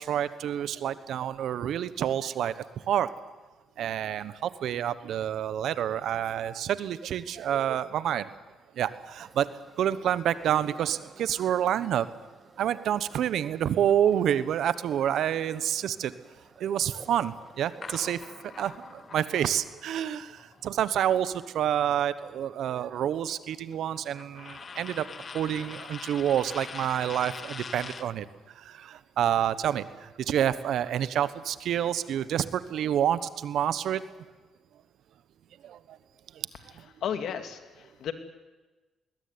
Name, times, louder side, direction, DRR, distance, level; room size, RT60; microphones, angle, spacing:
voice 1, 0.0-2.5 2.9-3.1 3.8-8.3 8.8-9.5 9.8-12.1 12.6-16.1 16.6-18.2 18.6-25.1 25.3-28.3 28.5-34.2 35.6-36.0 36.3-36.5, right 10 dB, 75° right, 14 dB, 1.2 m, -28 dB
sound 1, 9.2-19.1, right 3 dB, 25° right, 4.3 m, -54 dB
sound 2, 17.8-21.9 22.2-28.2, left 5 dB, 40° left, 1.1 m, -44 dB
voice 2, 37.0-38.1, left 8 dB, 70° left, 8 dB, 2.3 m, -33 dB
20.5 x 20.0 x 9.7 m, 1.2 s
cardioid pair, 90°, 0 cm